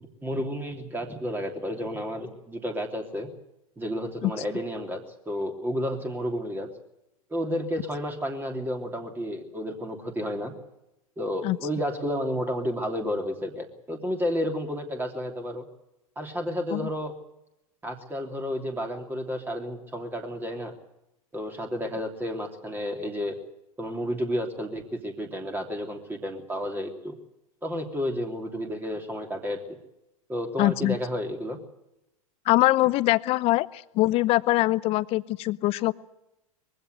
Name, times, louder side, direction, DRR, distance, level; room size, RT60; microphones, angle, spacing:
voice 1, 0.2-3.3 3.8-6.7 7.3-10.5 11.2-15.6 16.1-17.1 17.8-20.7 21.3-23.4 23.8-27.1 27.6-29.6 30.3-31.6, equal, 10° right, 4 dB, 3.1 m, -31 dB
voice 2, 30.6-31.0 32.5-35.9, left 18 dB, 30° left, 19 dB, 0.8 m, -23 dB
22.5 x 16.0 x 9.4 m, 0.88 s
figure-of-eight pair, 95°, 18 cm